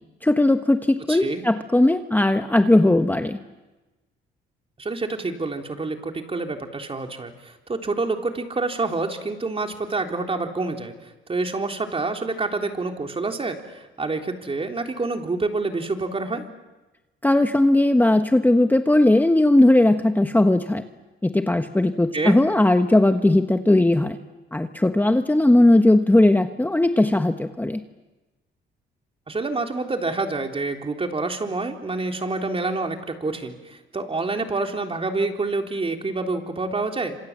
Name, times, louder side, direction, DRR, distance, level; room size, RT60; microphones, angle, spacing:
voice 1, 0.2-3.4 17.2-20.8 21.2-24.2 24.5-27.8, left 1 dB, 10° left, 7 dB, 1.3 m, -18 dB
voice 2, 1.1-1.4 4.8-10.9 11.3-16.5 22.1-22.4 29.3-37.2, right 3 dB, 30° right, 4 dB, 3.6 m, -27 dB
28.0 x 27.0 x 7.5 m, 1.1 s
cardioid pair, 90°, 20 cm